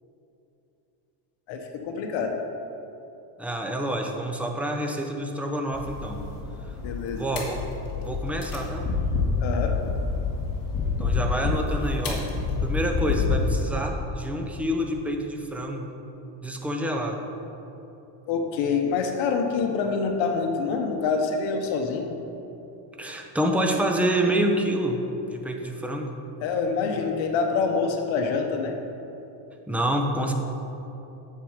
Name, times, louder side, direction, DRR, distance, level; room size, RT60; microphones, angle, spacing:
voice 1, 1.5-2.4 6.8-7.2 9.4-9.7 18.3-22.1 26.4-28.7, left 5 dB, 65° left, 4 dB, 1.1 m, -26 dB
voice 2, 3.4-6.2 7.1-7.6 8.0-8.9 11.0-12.3 12.6-15.9 16.4-17.2 23.0-25.0 25.3-26.1 29.7-30.3, right 1 dB, 5° right, 2 dB, 0.7 m, -27 dB
sound 1, 5.7-13.6, left 4 dB, 45° left, 1.8 m, -28 dB
9.1 x 7.7 x 5.0 m, 3.0 s
cardioid pair, 140°, 49 cm